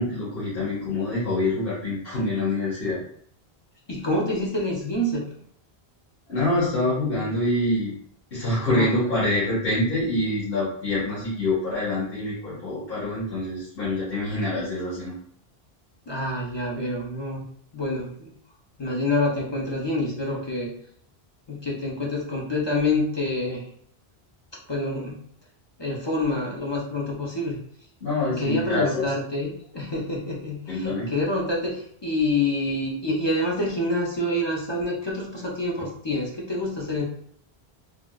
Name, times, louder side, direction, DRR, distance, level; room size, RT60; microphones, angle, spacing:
voice 1, 0.0-3.0 6.3-7.9 8.3-15.1 28.0-29.0 30.7-31.1, left 2 dB, 65° left, -9 dB, 1.3 m, -25 dB
voice 2, 3.9-5.2 8.7-9.0 16.1-17.4 17.7-18.3 18.8-20.7 21.5-23.6 24.7-25.2 25.8-27.6 28.4-37.0, left 2 dB, 30° left, -4 dB, 0.6 m, -27 dB
3.5 x 2.4 x 2.3 m, 0.63 s
omnidirectional pair, 1.1 m